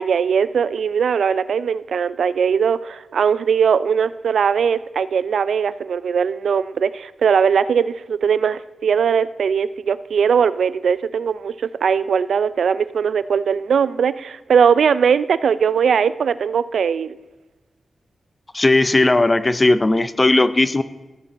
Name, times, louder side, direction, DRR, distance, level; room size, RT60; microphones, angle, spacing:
voice 1, 0.0-17.2, right 7 dB, 85° right, 16 dB, 0.3 m, -19 dB
voice 2, 18.5-20.8, left 2 dB, 25° left, 13 dB, 0.5 m, -16 dB
14.5 x 6.8 x 4.0 m, 1.1 s
wide cardioid pair, 125°, 0 cm